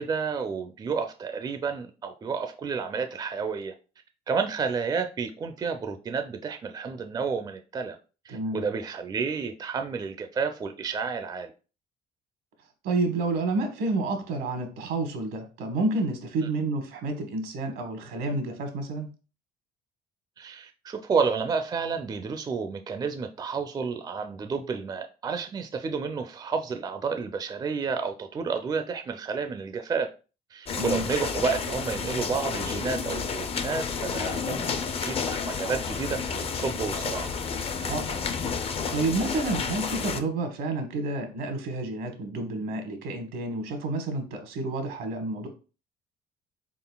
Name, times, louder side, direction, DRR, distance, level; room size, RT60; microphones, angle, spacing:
voice 1, 0.0-3.7 4.3-8.0 8.3-11.5 20.4-30.1 30.5-37.3, right 5 dB, 25° right, 0.4 m, -30 dB
voice 2, 8.3-8.6 12.8-19.1 30.8-31.0 37.8-38.2 38.9-45.5, right 2 dB, 80° right, 1.1 m, -29 dB
sound 1, 30.7-40.2, left 5 dB, 35° left, 0.4 m, -31 dB
3.9 x 3.8 x 2.2 m
cardioid pair, 110°, 17 cm